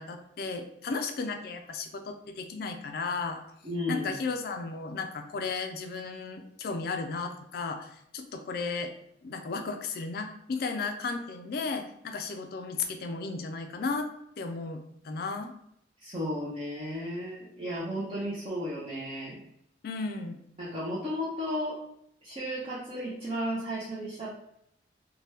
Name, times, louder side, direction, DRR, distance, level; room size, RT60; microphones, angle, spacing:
voice 1, 0.0-3.4 3.9-8.9 9.2-14.1 14.4-15.5 19.8-20.4, left 4 dB, 55° left, 6 dB, 0.3 m, -34 dB
voice 2, 3.6-4.1 16.0-19.4 20.6-21.8 22.2-24.3, equal, 30° right, -9 dB, 0.6 m, -34 dB
2.8 x 2.2 x 3.2 m, 0.75 s
head